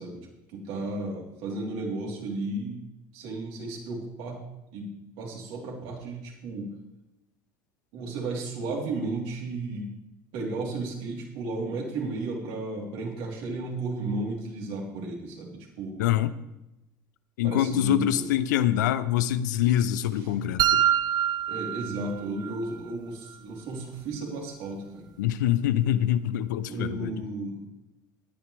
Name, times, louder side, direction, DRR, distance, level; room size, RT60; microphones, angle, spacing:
voice 1, 0.0-2.8 3.1-4.4 4.7-6.7 7.9-9.9 10.3-16.0 17.4-18.2 20.2-20.4 21.5-25.1 26.7-27.6, right 2 dB, 65° right, -2 dB, 3.8 m, -34 dB
voice 2, 16.0-16.3 17.4-20.8 25.2-27.3, left 11 dB, 80° left, 14 dB, 0.7 m, -25 dB
sound 1, 20.6-22.6, right 10 dB, 45° right, 0.5 m, -25 dB
20.0 x 9.6 x 3.4 m, 0.91 s
hypercardioid pair, 70°, 10 cm